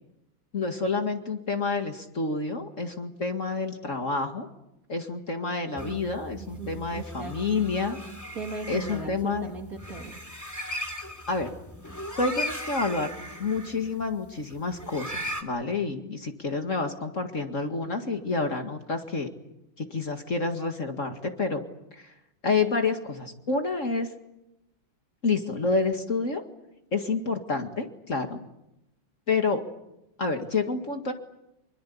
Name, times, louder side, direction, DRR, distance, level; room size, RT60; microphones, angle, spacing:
voice 1, 0.5-4.5 4.9-8.0 8.7-9.5 11.3-11.5 12.2-13.1 13.4-19.3 19.8-21.6 21.9-22.1 22.4-24.1 25.2-26.4 26.9-28.4 29.3-29.6 30.2-31.1, left 4 dB, 40° left, 5 dB, 2.3 m, -28 dB
voice 2, 5.5-6.1 6.4-7.7 8.0-10.2, right 4 dB, 45° right, 2 dB, 3.0 m, -39 dB
sound 1, 5.8-15.4, left 1 dB, 10° left, 2.6 m, -38 dB
26.0 x 23.5 x 8.6 m, 0.87 s
omnidirectional pair, 2.1 m